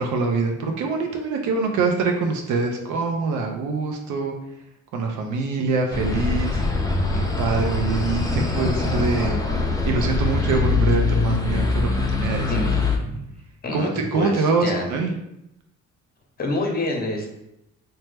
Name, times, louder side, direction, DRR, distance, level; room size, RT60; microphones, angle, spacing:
voice 1, 0.0-4.3 4.9-6.6 7.4-9.4 9.8-12.5 13.7-15.1, right 4 dB, 80° right, 2 dB, 0.5 m, -24 dB
sound 1, 5.9-13.0, left 3 dB, 10° left, 0.4 m, -23 dB
voice 2, 12.4-13.2 13.6-14.9 16.4-17.3, left 2 dB, 30° left, 1 dB, 0.7 m, -27 dB
2.9 x 2.1 x 3.2 m, 0.84 s
cardioid pair, 90°, 30 cm